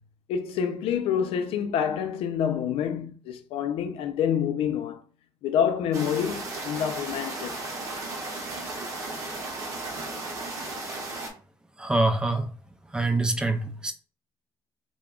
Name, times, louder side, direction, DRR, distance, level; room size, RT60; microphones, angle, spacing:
voice 1, 0.3-5.0 5.4-7.6 13.1-13.2, left 8 dB, 80° left, 0.4 m, -27 dB
sound 1, 5.9-11.3, right 2 dB, 35° right, 0.7 m, -35 dB
voice 2, 11.8-12.5 12.9-13.9, right 2 dB, 10° right, 0.3 m, -25 dB
2.3 x 2.1 x 3.6 m
cardioid pair, 155°, 10 cm